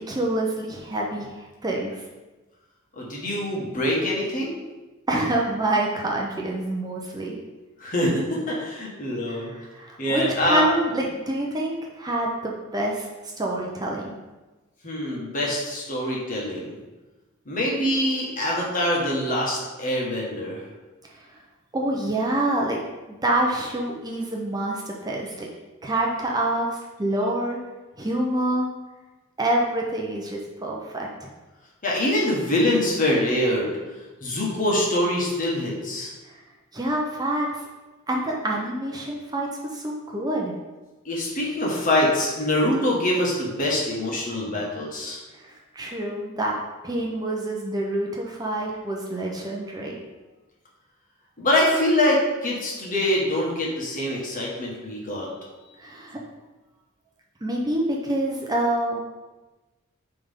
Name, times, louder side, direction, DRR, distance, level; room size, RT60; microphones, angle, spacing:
voice 1, 0.0-2.0 5.1-7.4 9.3-13.1 13.4-14.1 21.1-21.3 21.7-22.8 23.1-25.5 25.8-27.6 28.0-28.7 29.4-31.3 36.2-36.4 36.7-37.6 38.1-40.5 45.4-46.6 46.8-50.0 55.8-56.2 57.4-59.0, right 1 dB, 20° right, -2 dB, 0.7 m, -27 dB
voice 2, 3.0-4.5 7.8-9.5 10.0-10.7 14.8-16.7 17.4-20.6 31.8-33.7 34.2-36.1 41.0-45.2 51.4-55.3, left 1 dB, 40° left, -3 dB, 1.6 m, -24 dB
9.2 x 3.5 x 3.7 m, 1.2 s
head